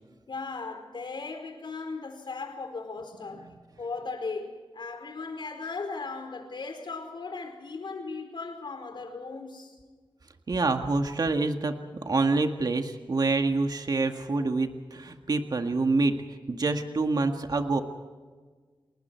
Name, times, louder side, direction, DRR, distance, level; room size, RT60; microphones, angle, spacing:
voice 1, 0.3-9.8, left 4 dB, 65° left, 4.7 m, -37 dB
voice 2, 10.5-16.2 16.5-17.8, right 3 dB, 50° right, 1.8 m, -26 dB
29.5 x 20.0 x 4.6 m
wide cardioid pair, 80°, 9 cm